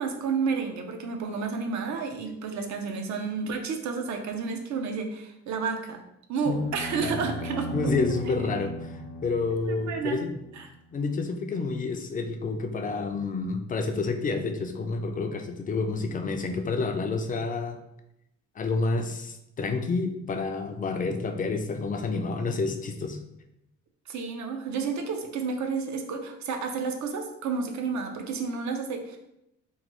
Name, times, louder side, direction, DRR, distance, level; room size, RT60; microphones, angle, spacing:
voice 1, 0.0-6.0 6.3-7.9 9.5-10.2 10.6-10.7 24.1-29.2, right 5 dB, 70° right, 4 dB, 0.6 m, -31 dB
sound 1, 6.4-10.6, equal, 90° left, 0.6 m, -37 dB
voice 2, 7.7-10.3 10.9-17.8 18.6-23.2, left 3 dB, 30° left, 6 dB, 0.4 m, -29 dB
3.0 x 2.2 x 2.9 m, 0.82 s
cardioid pair, 90°, 30 cm